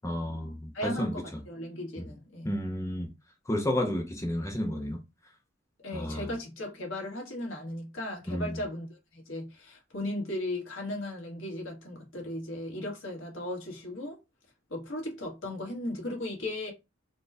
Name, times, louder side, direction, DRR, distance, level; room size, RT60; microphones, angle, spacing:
voice 1, 0.0-1.1 2.0-2.1 2.4-3.1 3.5-5.0 5.9-6.3 8.3-8.5, left 1 dB, 15° left, 0.7 m, -31 dB
voice 2, 0.7-2.5 5.8-14.2 14.7-16.7, left 1 dB, 90° left, 1.6 m, -36 dB
4.2 x 2.3 x 3.4 m
head